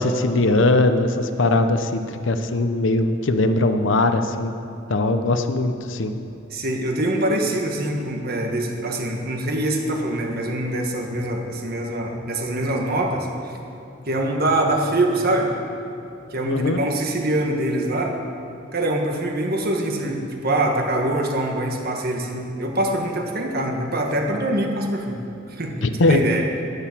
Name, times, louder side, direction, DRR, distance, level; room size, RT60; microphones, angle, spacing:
voice 1, 0.0-4.5 4.9-6.1 16.5-16.8 25.8-26.2, left 2 dB, 65° left, 8 dB, 0.7 m, -20 dB
voice 2, 6.5-13.6 14.1-15.5 16.3-18.2 18.7-25.2 25.5-25.7 26.1-26.5, right 1 dB, 50° right, 1 dB, 1.5 m, -24 dB
11.5 x 10.0 x 7.4 m, 2.8 s
head